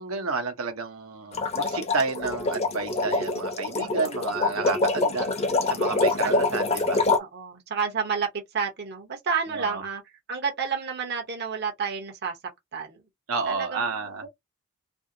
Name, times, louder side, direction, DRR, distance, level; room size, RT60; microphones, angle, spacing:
voice 1, 0.0-7.0 9.5-9.8 13.3-14.2, right 4 dB, 80° right, 0.9 m, -31 dB
sound 1, 1.3-7.2, left 3 dB, 30° left, 0.7 m, -25 dB
voice 2, 7.2-10.0 10.3-12.4 12.7-13.0 13.5-14.3, right 6 dB, 50° right, 0.8 m, -30 dB
2.9 x 2.7 x 2.6 m
head